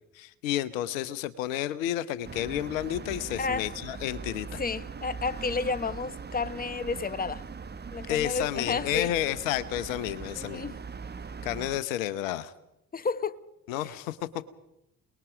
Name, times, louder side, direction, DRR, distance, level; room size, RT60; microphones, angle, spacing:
voice 1, 0.1-4.6 8.1-10.6 11.4-12.5 13.7-14.2, left 12 dB, 75° left, 1.1 m, -31 dB
sound 1, 2.2-11.8, right 5 dB, 25° right, 1.3 m, -41 dB
voice 2, 3.4-3.7 4.6-7.4 7.9-9.1 10.4-10.8 12.9-13.4, left 4 dB, 20° left, 1.2 m, -31 dB
28.5 x 20.0 x 5.1 m
figure-of-eight pair, 50°, 40 cm